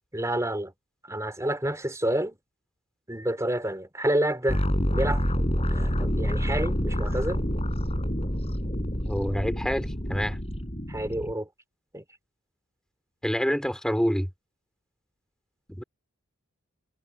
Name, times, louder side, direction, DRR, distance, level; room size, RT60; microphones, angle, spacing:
voice 1, 0.1-0.7 1.1-2.4 3.1-4.6 4.9-5.2 5.7-7.4 10.9-11.5 11.9-12.0, right 1 dB, 15° right, 4.2 m, -28 dB
sound 1, 4.5-11.3, equal, 30° left, 5.2 m, -27 dB
voice 2, 9.0-10.4 13.2-14.3 15.7-15.8, equal, 5° left, 3.0 m, -27 dB
head